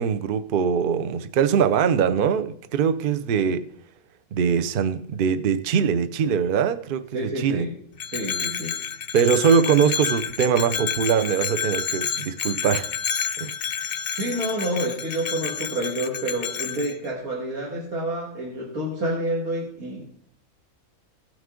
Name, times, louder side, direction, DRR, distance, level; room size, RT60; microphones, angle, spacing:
voice 1, 0.0-3.6 4.3-7.7 9.1-12.9 13.4-13.5, right 7 dB, 55° right, 0.6 m, -22 dB
voice 2, 7.1-7.7 8.1-8.7 14.2-20.2, right 1 dB, 75° right, 2.2 m, -28 dB
Bell, 8.0-16.9, left 7 dB, 80° left, 0.4 m, -30 dB
16.0 x 6.3 x 3.7 m
omnidirectional pair, 1.5 m